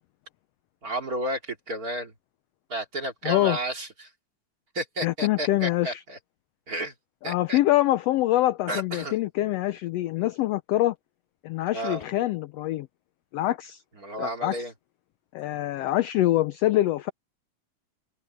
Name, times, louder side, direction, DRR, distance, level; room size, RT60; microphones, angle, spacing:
voice 1, 0.8-2.1 2.7-4.1 4.7-6.2 6.7-6.9 7.2-7.6 8.7-9.2 11.7-12.0 14.0-14.7, right 1 dB, 30° right, 2.7 m, -32 dB
voice 2, 3.2-3.6 5.0-6.0 7.2-10.9 11.4-12.9 13.3-13.8 14.2-14.6 15.3-17.1, left 15 dB, 85° left, 1.4 m, -25 dB
omnidirectional pair, 3.4 m